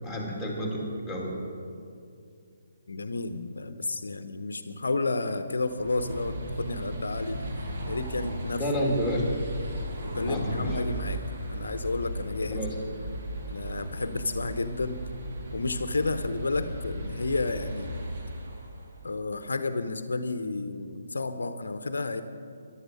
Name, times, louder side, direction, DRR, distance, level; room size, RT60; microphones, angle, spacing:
voice 1, 0.0-1.3 8.6-9.2 10.3-10.8 12.5-12.7, equal, 5° right, -3 dB, 3.0 m, -30 dB
voice 2, 2.9-7.4 7.9-8.7 10.0-11.2 11.5-12.6 13.5-15.0 15.5-17.9 19.0-22.2, left 3 dB, 70° left, 10 dB, 0.8 m, -31 dB
sound 1, 5.6-19.1, right 1 dB, 50° right, 2.1 m, -36 dB
14.5 x 11.5 x 6.4 m, 2.4 s
figure-of-eight pair, 140°, 0 cm